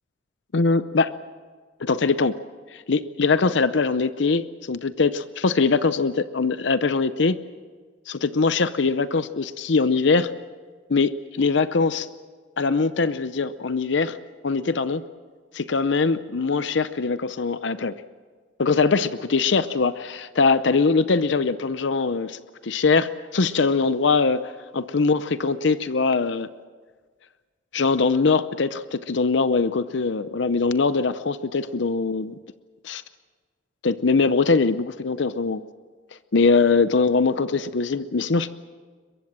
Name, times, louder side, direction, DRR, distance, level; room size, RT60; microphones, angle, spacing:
voice 1, 0.5-1.1 1.8-2.4 2.7-7.4 8.1-10.3 10.9-11.1 11.4-12.1 12.6-14.2 14.4-15.0 15.5-18.0 18.6-26.5 27.7-32.4 32.8-33.0 33.8-35.6 36.3-38.5, left 4 dB, 65° left, 13 dB, 0.7 m, -22 dB
22.5 x 22.5 x 7.5 m, 1.5 s
head